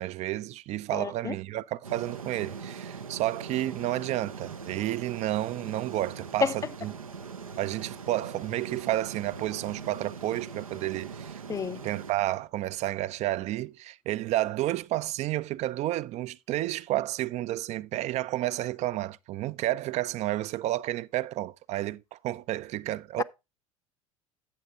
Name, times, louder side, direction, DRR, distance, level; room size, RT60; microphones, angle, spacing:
voice 1, 0.0-6.9 7.6-11.4 11.8-23.2, right 15 dB, 40° right, 0.4 m, -31 dB
voice 2, 0.9-1.3 6.4-6.5 11.5-11.8 23.2-23.3, left 6 dB, 20° left, 0.4 m, -29 dB
sound 1, 1.8-12.1, right 6 dB, 85° right, 0.7 m, -41 dB
11.5 x 8.0 x 2.5 m
figure-of-eight pair, 70°, 17 cm